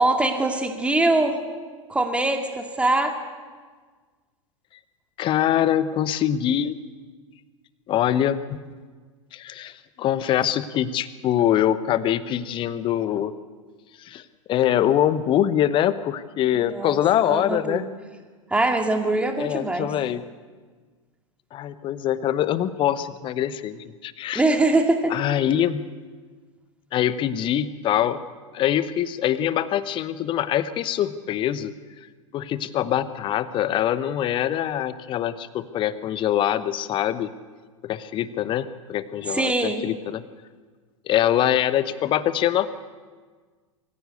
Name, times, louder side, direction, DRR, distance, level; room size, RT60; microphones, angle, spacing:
voice 1, 0.0-1.4 1.9-3.1 16.5-17.0 17.2-17.8 18.5-19.9 24.3-25.1 39.3-39.8, right 2 dB, 5° right, 4 dB, 2.3 m, -22 dB
voice 2, 5.2-6.8 7.9-8.6 9.3-13.3 14.0-17.8 19.4-20.2 21.5-24.4 25.1-25.8 26.9-28.2 28.5-31.7 32.3-37.3 37.8-40.2 41.1-42.7, left 11 dB, 30° left, 15 dB, 0.9 m, -24 dB
24.0 x 15.5 x 8.2 m, 1.5 s
figure-of-eight pair, 90°, 17 cm